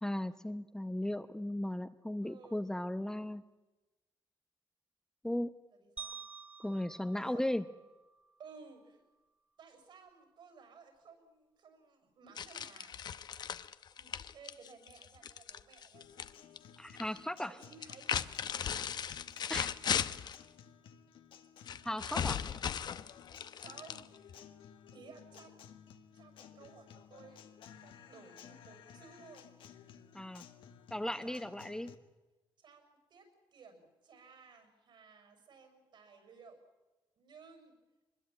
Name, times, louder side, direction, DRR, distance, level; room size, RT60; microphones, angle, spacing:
voice 1, 0.0-3.4 5.2-5.5 6.6-7.6 16.8-17.6 19.5-19.7 21.8-22.4 30.1-30.4 30.9-31.9, left 1 dB, 5° left, 10 dB, 0.8 m, -36 dB
voice 2, 2.2-2.6 5.7-6.2 7.1-7.5 8.4-9.0 9.6-13.0 13.9-16.1 17.4-18.1 18.5-18.9 21.9-22.4 23.6-24.1 24.9-25.6 26.1-29.5 31.2-31.7 32.6-36.6 37.2-37.8, right 5 dB, 65° right, 6 dB, 6.9 m, -57 dB
sound 1, 6.0-8.3, right 5 dB, 15° right, 1.1 m, -49 dB
sound 2, 12.4-16.3 16.6-17.2 17.7-20.4 21.7-24.3, left 8 dB, 55° left, 0.9 m, -37 dB
Guitar, 15.9-31.9, left 8 dB, 80° left, 1.8 m, -56 dB
23.0 x 21.0 x 8.9 m, 1.1 s
cardioid pair, 95°, 9 cm